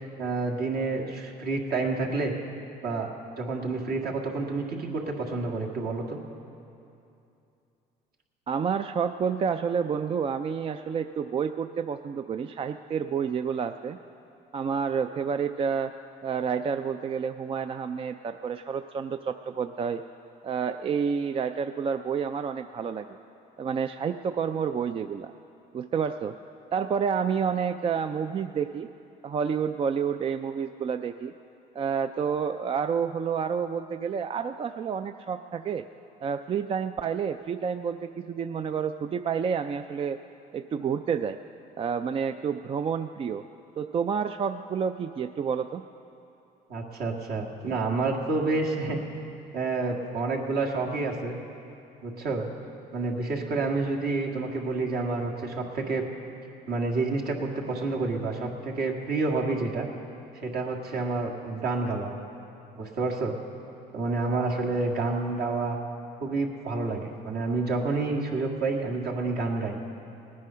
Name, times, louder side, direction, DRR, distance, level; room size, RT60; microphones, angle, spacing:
voice 1, 0.2-2.3 2.8-3.1 3.4-6.2 46.7-49.0 49.5-51.4 52.0-52.5 52.9-56.0 56.7-59.9 60.3-62.1 62.8-63.4 63.9-65.8 66.2-69.8, right 3 dB, 65° right, 0 dB, 1.9 m, -29 dB
voice 2, 8.5-14.0 14.5-15.9 16.2-20.0 20.4-23.2 23.6-25.3 25.7-26.3 26.7-28.9 29.2-31.3 31.7-35.8 36.2-40.2 40.5-41.4 41.8-43.4 43.8-45.8, right 6 dB, 35° right, 9 dB, 0.4 m, -29 dB
19.0 x 9.7 x 5.6 m, 2.7 s
cardioid pair, 110°, 17 cm